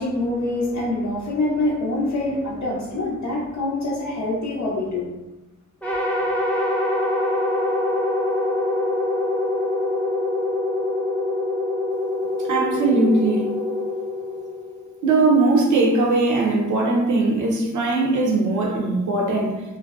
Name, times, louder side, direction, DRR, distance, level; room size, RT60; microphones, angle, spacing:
voice 1, 0.0-5.1, left 2 dB, 65° left, -6 dB, 0.6 m, -25 dB
sound 1, 5.8-15.1, left 2 dB, 5° left, 0.5 m, -24 dB
voice 2, 12.4-13.5 15.0-19.6, right 3 dB, 70° right, 0 dB, 0.6 m, -20 dB
2.5 x 2.2 x 2.3 m, 1.0 s
cardioid pair, 60°, 31 cm